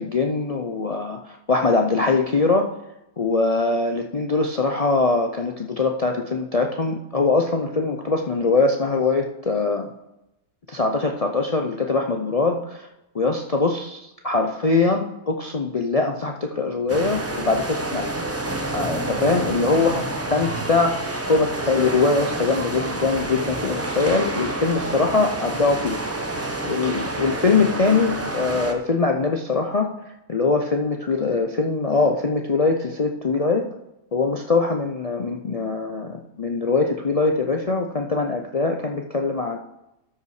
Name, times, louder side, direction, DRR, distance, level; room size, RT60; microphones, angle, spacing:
voice 1, 0.0-2.7 3.2-9.9 10.7-12.9 13.1-18.1 18.7-26.0 26.3-29.9 30.3-33.7 34.1-39.6, left 3 dB, 55° left, 3 dB, 0.4 m, -22 dB
sound 1, 16.9-28.7, right 2 dB, 15° right, 0.6 m, -28 dB
12.5 x 5.6 x 4.8 m, 0.90 s
omnidirectional pair, 1.5 m